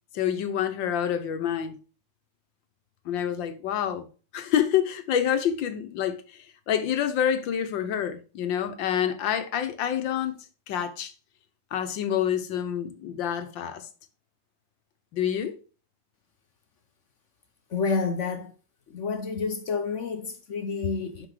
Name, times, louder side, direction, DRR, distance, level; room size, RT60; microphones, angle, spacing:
voice 1, 0.1-1.8 3.0-4.1 4.3-10.3 10.7-11.1 11.7-13.9 15.1-15.6, left 9 dB, 80° left, 1.6 m, -27 dB
voice 2, 17.7-18.5 18.9-21.3, left 4 dB, 55° left, 0.9 m, -29 dB
6.2 x 6.0 x 4.9 m
omnidirectional pair, 2.0 m